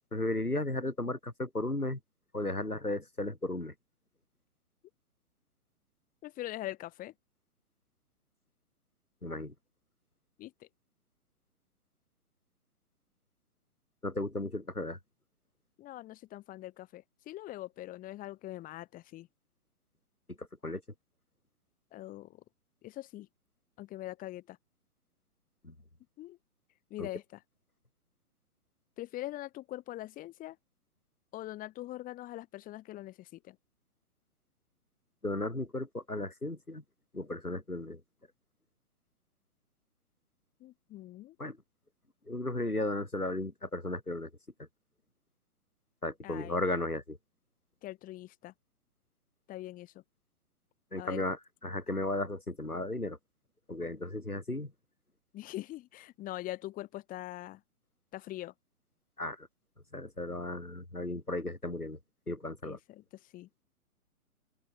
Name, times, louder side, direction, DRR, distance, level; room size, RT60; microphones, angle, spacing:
voice 1, 0.1-2.0 2.3-3.7 9.2-9.5 14.0-15.0 20.4-20.8 25.6-25.7 27.0-27.1 35.2-36.8 37.1-38.0 41.4-41.6 42.3-44.3 46.0-47.2 50.9-51.4 51.6-53.2 53.7-54.7 59.2-59.5 59.9-62.0 62.3-62.8, left 2 dB, 90° left, 3.3 m, -35 dB
voice 2, 6.2-7.1 10.4-10.7 15.8-19.3 21.9-22.4 22.8-23.3 23.8-24.6 26.2-26.4 26.9-27.4 29.0-30.6 31.3-33.6 40.6-41.4 46.2-46.6 47.8-48.5 49.5-50.0 51.0-51.2 55.3-57.6 58.1-58.5 62.6-63.5, left 15 dB, 20° left, 4.2 m, -43 dB
open air
figure-of-eight pair, 125°, 43 cm